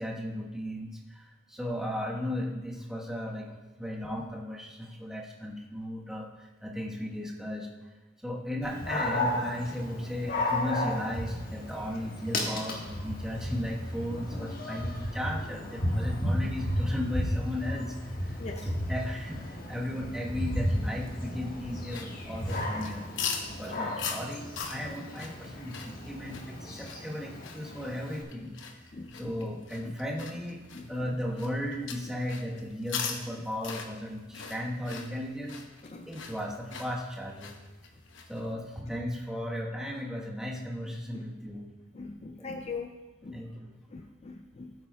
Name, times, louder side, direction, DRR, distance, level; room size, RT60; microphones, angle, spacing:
voice 1, 0.0-7.7 8.2-23.1 23.5-28.6 29.1-30.6 30.9-35.6 36.0-37.6 38.3-41.7 42.4-42.5 43.3-43.7, left 1 dB, 5° right, -3 dB, 1.3 m, -36 dB
Dog, 8.6-28.2, left 1 dB, 50° left, 1.5 m, -34 dB
voice 2, 18.4-18.7 28.9-29.1 29.8-29.9 30.7-30.9 35.8-36.1 41.1-41.2 41.9-43.0 43.2-43.4 43.9-44.7, left 4 dB, 35° left, 5 dB, 0.5 m, -41 dB
sound 1, 21.8-38.5, left 6 dB, 75° left, 1.0 m, -42 dB
16.5 x 8.6 x 2.4 m, 1.2 s
head